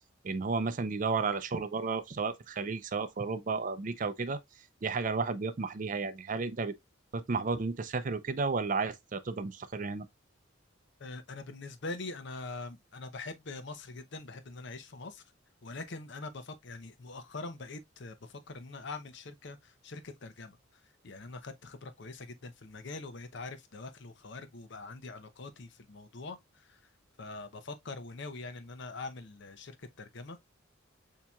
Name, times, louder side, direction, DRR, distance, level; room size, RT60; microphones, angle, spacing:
voice 1, 0.2-4.4 4.8-6.7 7.1-10.1, right 4 dB, 40° right, 0.4 m, -32 dB
voice 2, 11.0-15.2 15.6-26.9 27.2-30.4, left 3 dB, 60° left, 0.6 m, -43 dB
7.1 x 2.9 x 2.3 m
head